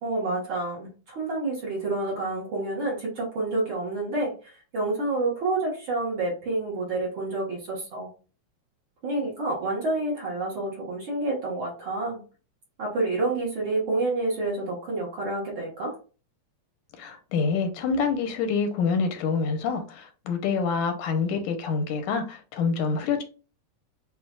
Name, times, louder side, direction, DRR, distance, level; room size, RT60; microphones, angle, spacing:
voice 1, 0.0-8.1 9.0-12.2 12.8-16.0, right 2 dB, 55° right, 1.6 m, -28 dB
voice 2, 17.0-23.2, left 5 dB, 85° left, 2.2 m, -26 dB
7.2 x 2.5 x 2.3 m
omnidirectional pair, 3.4 m